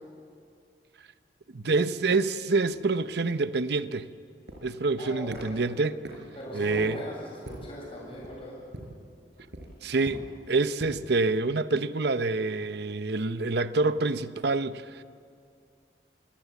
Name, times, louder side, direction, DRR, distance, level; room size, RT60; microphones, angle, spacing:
voice 1, 1.5-4.1 4.6-6.0 6.5-7.0 9.8-15.0, right 3 dB, 65° right, 0.8 m, -27 dB
sound 1, 3.0-11.1, right 1 dB, 85° right, 4.8 m, -45 dB
voice 2, 5.0-5.6 6.3-8.5, equal, 35° left, 7.7 m, -39 dB
27.0 x 18.0 x 8.4 m
head